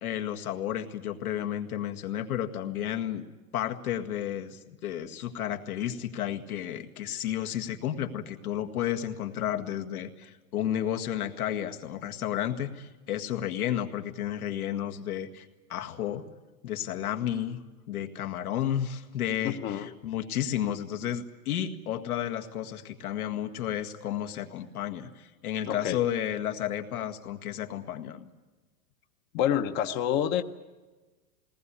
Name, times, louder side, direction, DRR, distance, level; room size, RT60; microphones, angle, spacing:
voice 1, 0.0-3.3 3.5-16.2 16.6-17.6 17.9-28.3, left 10 dB, 85° left, 5 dB, 2.1 m, -32 dB
voice 2, 19.4-19.9 25.7-26.0 29.3-30.4, left 10 dB, 25° left, 8 dB, 0.7 m, -27 dB
21.0 x 19.0 x 9.9 m, 1.2 s
supercardioid pair, 160°, 43 cm